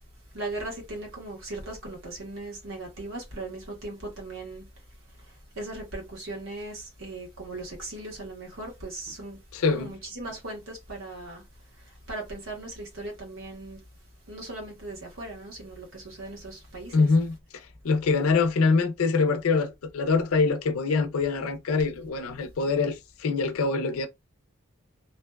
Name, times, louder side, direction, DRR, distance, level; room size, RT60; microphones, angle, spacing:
voice 1, 0.3-4.6 5.2-9.4 9.7-11.4 11.8-13.8 14.3-17.2, right 2 dB, 65° right, 1.1 m, -38 dB
voice 2, 9.5-9.9 16.9-17.3 17.8-24.1, left 4 dB, 85° left, 0.4 m, -24 dB
2.5 x 2.2 x 2.2 m
head